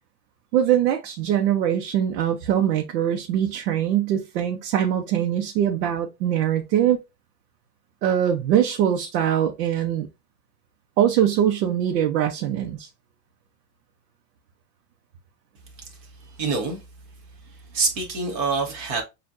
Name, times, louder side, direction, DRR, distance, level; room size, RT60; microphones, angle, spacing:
voice 1, 0.5-7.0 8.0-10.1 11.0-12.9, right 10 dB, 75° right, 0.9 m, -22 dB
voice 2, 16.4-16.8 17.7-19.0, right 4 dB, 15° right, 0.3 m, -25 dB
6.8 x 2.5 x 2.5 m
supercardioid pair, 170°, 47 cm